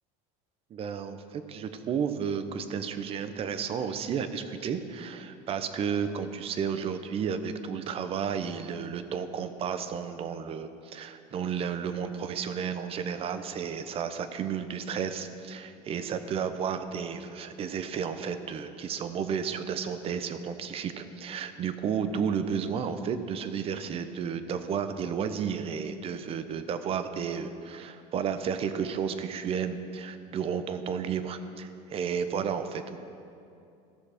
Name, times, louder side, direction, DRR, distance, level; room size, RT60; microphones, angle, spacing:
voice 1, 0.7-33.0, right 7 dB, 40° right, 10 dB, 0.7 m, -32 dB
14.5 x 6.5 x 4.9 m, 2.6 s
supercardioid pair, 120°, 15 cm